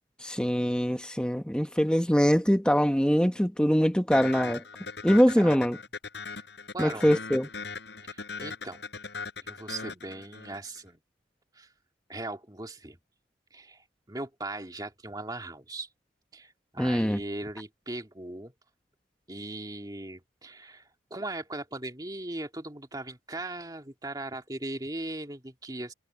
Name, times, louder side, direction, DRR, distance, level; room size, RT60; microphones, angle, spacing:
voice 1, 0.2-4.6 5.0-5.8 6.8-7.5 16.8-17.2, equal, 5° left, 1.2 m, -23 dB
sound 1, 4.1-10.8, left 4 dB, 65° left, 4.5 m, -39 dB
voice 2, 6.7-7.1 8.1-8.8 9.4-11.0 11.5-11.7 12.1-13.0 13.5-15.9 16.3-18.5 19.3-25.9, right 2 dB, 20° right, 2.2 m, -39 dB
head